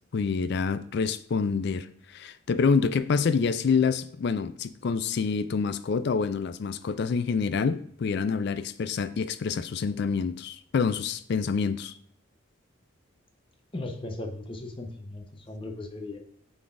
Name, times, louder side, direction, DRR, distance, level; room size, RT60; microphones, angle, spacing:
voice 1, 0.1-1.9 2.1-11.9, left 5 dB, 55° left, 13 dB, 0.3 m, -27 dB
voice 2, 13.7-16.2, left 2 dB, 25° left, 3 dB, 0.7 m, -37 dB
9.2 x 4.1 x 2.5 m, 0.66 s
head